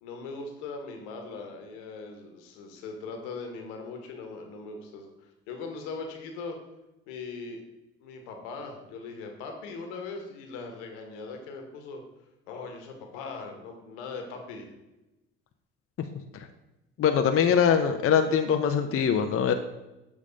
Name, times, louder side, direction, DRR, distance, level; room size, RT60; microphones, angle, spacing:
voice 1, 0.0-5.1 5.5-6.6 7.1-7.6 8.0-12.0 12.5-14.7, left 4 dB, 75° left, 4 dB, 1.3 m, -40 dB
voice 2, 17.0-19.5, left 7 dB, 40° left, 6 dB, 0.7 m, -23 dB
7.3 x 3.6 x 5.1 m, 0.97 s
hypercardioid pair, 55°, 34 cm